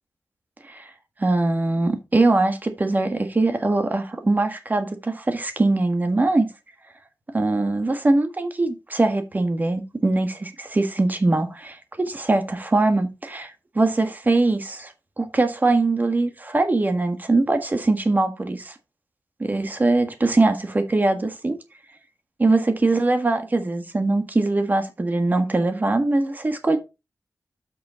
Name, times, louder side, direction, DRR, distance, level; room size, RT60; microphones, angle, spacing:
voice 1, 1.2-6.5 7.3-18.7 19.4-21.6 22.4-26.8, right 2 dB, 30° right, 1.6 m, -22 dB
8.0 x 6.2 x 4.4 m
wide cardioid pair, 130°, 6 cm